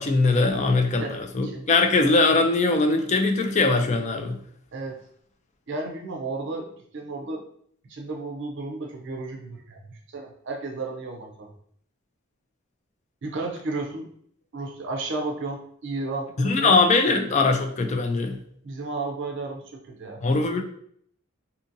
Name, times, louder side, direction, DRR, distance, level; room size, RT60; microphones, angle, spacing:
voice 1, 0.0-4.4 16.4-18.4 20.2-20.6, left 3 dB, 35° left, 5 dB, 0.3 m, -21 dB
voice 2, 1.0-1.7 4.7-5.0 5.7-7.4 7.9-11.5 13.2-14.1 14.5-17.3 18.6-20.2, right 3 dB, 60° right, 2 dB, 0.5 m, -33 dB
2.7 x 2.6 x 2.6 m, 0.64 s
head